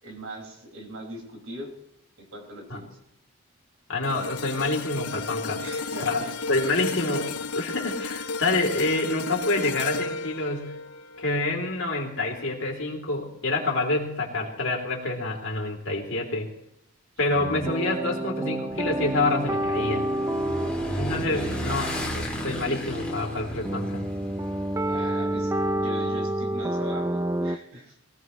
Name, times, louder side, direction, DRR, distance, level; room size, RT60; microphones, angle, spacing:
voice 1, 0.0-1.7 2.2-2.9 5.6-6.3 21.2-21.6 24.8-28.0, right 1 dB, 75° right, 0 dB, 5.6 m, -40 dB
voice 2, 3.9-5.6 6.0-6.2 6.5-7.3 7.5-10.7 11.2-16.5 17.2-20.0 20.9-24.0, left 2 dB, 65° left, 1 dB, 3.2 m, -27 dB
sound 1, 4.0-12.4 12.8-13.0, left 4 dB, 90° left, 0.9 m, -34 dB
sound 2, 17.4-27.6, right 1 dB, 10° right, 0.5 m, -29 dB
Motorcycle / Engine, 18.7-25.7, equal, 5° left, 2.6 m, -34 dB
22.5 x 17.5 x 3.2 m, 0.76 s
head